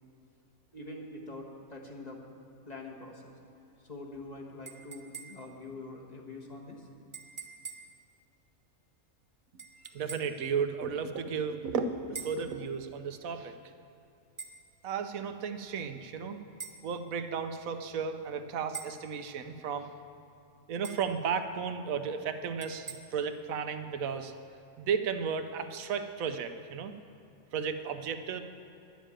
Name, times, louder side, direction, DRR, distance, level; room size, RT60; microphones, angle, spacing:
voice 1, 0.7-2.2 2.7-3.4 3.8-6.9, left 2 dB, 30° left, 0 dB, 1.5 m, -44 dB
sound 1, 4.7-5.6 7.1-8.0 9.6-10.4 12.2-12.5 14.4-14.6 16.6-16.8 18.7-19.1 20.8-21.2 22.6-23.0, right 6 dB, 25° right, 0.8 m, -44 dB
voice 2, 9.9-13.6 14.8-16.4 16.8-19.9 20.7-24.3 24.8-26.9 27.5-28.4, right 6 dB, 80° right, 9 dB, 1.2 m, -34 dB
11.5 x 7.3 x 8.8 m, 2.8 s
omnidirectional pair, 1.4 m